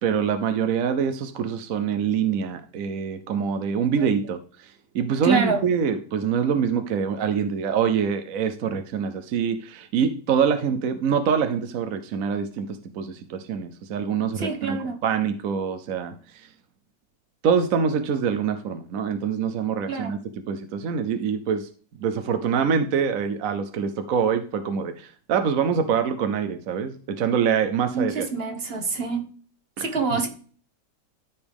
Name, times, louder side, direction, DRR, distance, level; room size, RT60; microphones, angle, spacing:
voice 1, 0.0-12.7 12.9-14.8 15.0-16.5 17.4-20.2 20.5-21.7 22.0-28.3 29.8-29.9, right 7 dB, 60° right, 8 dB, 1.0 m, -25 dB
voice 2, 5.2-5.6 14.3-15.0 19.9-20.1 27.9-29.2 29.8-30.3, right 4 dB, 35° right, 6 dB, 1.4 m, -26 dB
13.5 x 5.1 x 3.5 m, 0.42 s
omnidirectional pair, 1.9 m